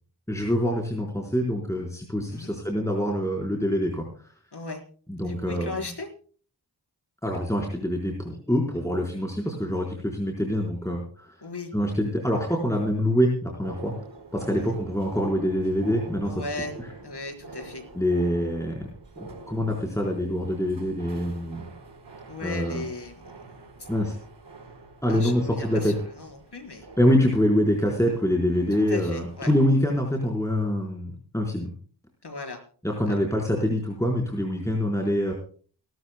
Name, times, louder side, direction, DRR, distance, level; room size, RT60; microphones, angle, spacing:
voice 1, 0.3-4.0 5.1-5.9 7.2-11.3 11.7-13.9 14.3-16.5 17.9-18.9 19.2-21.7 22.4-22.8 23.9-24.2 25.0-25.9 27.0-31.7 33.0-35.3, equal, 5° left, -1 dB, 4.2 m, -25 dB
voice 2, 4.5-4.8 5.2-6.1 11.4-11.7 14.5-14.8 16.2-17.8 22.3-23.4 23.8-23.9 25.1-26.9 28.7-29.5 32.2-32.6 33.0-33.2, left 3 dB, 65° left, 3 dB, 4.4 m, -37 dB
sound 1, 13.6-29.7, right 3 dB, 85° right, 4.2 m, -45 dB
29.0 x 13.0 x 2.2 m, 0.44 s
cardioid pair, 45°, 43 cm